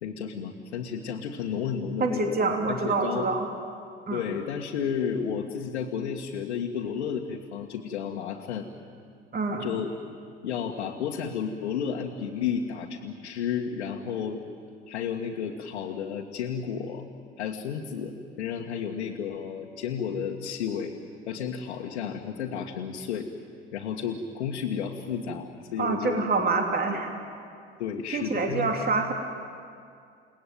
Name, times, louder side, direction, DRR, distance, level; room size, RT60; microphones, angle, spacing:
voice 1, 0.0-2.4 2.7-3.3 4.1-8.7 9.6-9.9 10.4-14.4 14.9-17.0 17.4-20.9 21.3-23.3 23.7-26.5 26.9-27.0 27.8-28.7, left 7 dB, 70° left, 0 dB, 1.8 m, -32 dB
voice 2, 2.0-3.5 4.1-4.2 9.3-9.7 25.8-27.1 28.1-29.1, right 3 dB, 25° right, 2 dB, 3.2 m, -26 dB
30.0 x 18.5 x 9.3 m, 2.3 s
figure-of-eight pair, 65°, 34 cm